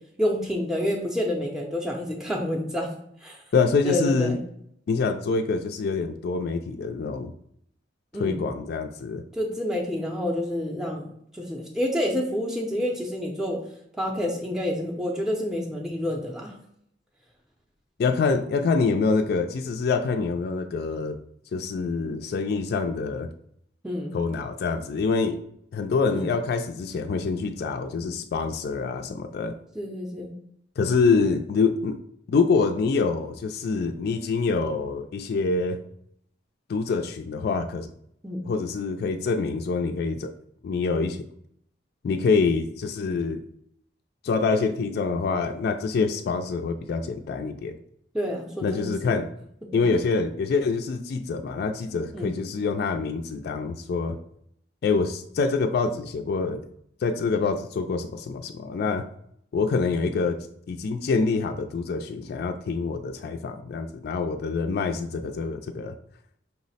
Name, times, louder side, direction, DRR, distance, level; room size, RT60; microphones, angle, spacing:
voice 1, 0.2-2.9 3.2-3.4 3.8-4.4 8.1-8.4 9.3-13.6 14.0-16.5 23.8-24.2 26.1-26.2 29.7-30.3 38.2-38.5 48.1-49.2 52.1-52.4, left 1 dB, 5° right, -1 dB, 0.5 m, -28 dB
voice 2, 3.5-4.4 4.9-7.3 8.2-9.2 18.0-21.2 21.5-23.3 24.1-25.4 25.7-29.5 30.8-32.0 32.3-35.8 36.7-37.9 38.4-40.3 40.6-41.2 42.0-43.4 44.2-47.8 48.6-49.3 49.7-54.2 54.8-56.6 57.0-59.0 59.5-60.4 60.7-66.0, left 4 dB, 60° left, 6 dB, 0.3 m, -26 dB
5.6 x 2.0 x 4.0 m, 0.70 s
head